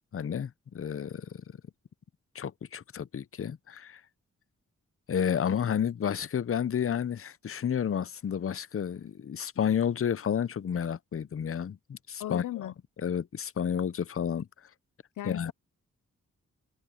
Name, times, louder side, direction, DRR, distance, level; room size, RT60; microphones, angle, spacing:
voice 1, 0.1-1.4 2.3-4.0 5.1-12.7 13.0-14.5 15.2-15.5, left 8 dB, 45° left, 0.7 m, -31 dB
voice 2, 12.2-12.7 15.2-15.5, left 14 dB, 85° left, 0.6 m, -36 dB
cardioid pair, 60°, 30 cm